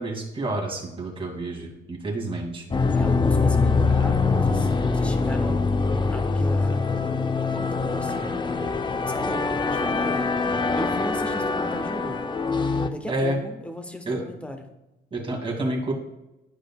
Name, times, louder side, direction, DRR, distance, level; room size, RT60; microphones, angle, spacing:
voice 1, 0.0-2.6 13.1-13.4 14.1-14.2 15.1-15.9, right 1 dB, 25° right, 0 dB, 2.1 m, -29 dB
sound 1, 2.7-12.9, left 4 dB, 25° left, 0.5 m, -23 dB
voice 2, 2.9-5.6 5.9-10.3 10.8-12.2 12.9-14.6, equal, 5° left, 6 dB, 1.0 m, -35 dB
11.5 x 4.9 x 2.2 m, 0.95 s
cardioid pair, 90°, 20 cm